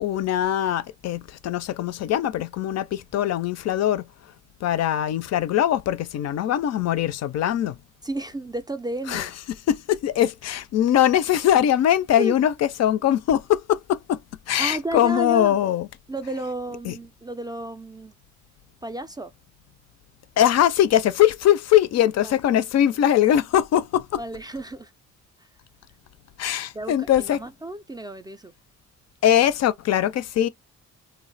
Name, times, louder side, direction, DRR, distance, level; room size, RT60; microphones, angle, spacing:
voice 1, 0.0-4.0 4.6-7.8 9.1-9.3 9.7-14.2 14.5-15.9 16.9-17.0 20.4-24.2 26.4-27.4 29.2-30.5, left 11 dB, 60° left, 0.4 m, -21 dB
voice 2, 8.0-9.3 12.2-12.3 14.6-15.6 16.1-18.1 18.8-19.3 22.2-22.4 24.2-24.9 26.7-28.5, right 2 dB, 15° right, 0.3 m, -32 dB
2.3 x 2.1 x 3.9 m
cardioid pair, 90°, 30 cm